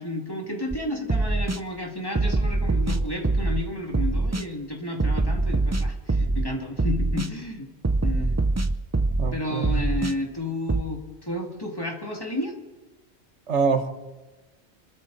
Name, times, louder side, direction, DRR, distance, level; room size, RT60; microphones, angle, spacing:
voice 1, 0.0-7.7 8.0-8.3 9.3-12.5, left 1 dB, 20° left, 1 dB, 2.4 m, -32 dB
sound 1, 0.7-0.8 1.1-1.6 2.2-3.6 3.9-4.5 5.0-6.5 6.8-7.3 7.8-9.3 9.6-10.1 10.7-10.8, right 2 dB, 20° right, 0.4 m, -23 dB
voice 2, 9.2-9.9 13.5-13.9, right 5 dB, 85° right, 7 dB, 1.6 m, -25 dB
27.5 x 13.0 x 4.1 m, 1.2 s
omnidirectional pair, 1.2 m